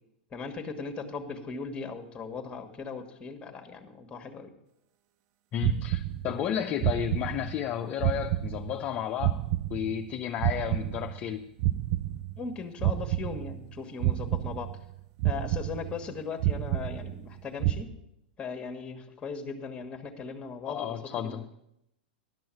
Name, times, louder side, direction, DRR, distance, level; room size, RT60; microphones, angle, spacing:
voice 1, 0.3-4.5 12.4-14.7 15.2-17.9 18.4-21.0 21.2-21.5, left 5 dB, 20° left, 6 dB, 1.4 m, -38 dB
voice 2, 5.5-9.4 9.7-11.5 20.7-21.4, left 10 dB, 35° left, 4 dB, 0.6 m, -32 dB
sound 1, 5.6-6.5 6.8-7.7 8.0-10.1 10.4-12.5 12.8-13.7 14.0-14.9 15.2-16.1 16.4-17.3 17.6-17.8, right 14 dB, 45° right, 0.5 m, -30 dB
11.0 x 6.3 x 7.3 m, 0.82 s
hypercardioid pair, 115°, 6 cm